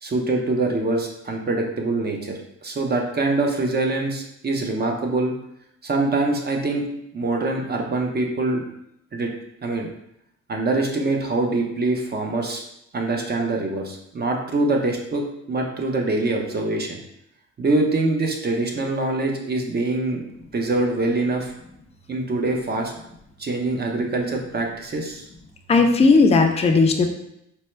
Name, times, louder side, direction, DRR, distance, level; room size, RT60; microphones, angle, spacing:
voice 1, 0.0-5.3 5.8-6.9 7.1-8.6 9.1-9.3 9.6-9.9 10.5-12.7 12.9-17.0 17.6-20.2 20.5-21.5 22.1-22.9 23.4-25.3, right 2 dB, 35° right, 2 dB, 0.7 m, -24 dB
voice 2, 25.7-27.0, left 4 dB, 20° left, 4 dB, 0.4 m, -16 dB
4.4 x 2.2 x 3.2 m, 0.77 s
cardioid pair, 90°, 30 cm